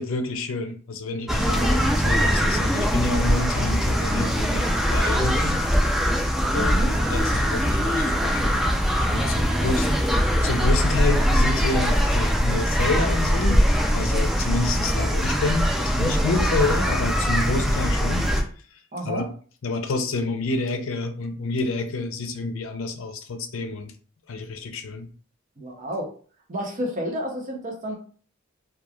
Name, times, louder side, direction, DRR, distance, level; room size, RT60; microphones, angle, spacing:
voice 1, 0.0-5.6 6.5-6.8 7.1-8.7 9.0-9.9 10.4-18.3 19.0-19.3 19.6-23.9 24.3-25.1, left 3 dB, 70° left, 7 dB, 0.5 m, -28 dB
sound 1, 1.3-18.4, equal, ahead, 0.3 m, -22 dB
voice 2, 6.5-6.9 9.4-9.9 18.9-19.3 25.6-26.1 26.5-28.0, equal, 40° right, 0 dB, 0.7 m, -31 dB
3.0 x 2.3 x 2.3 m, 0.41 s
head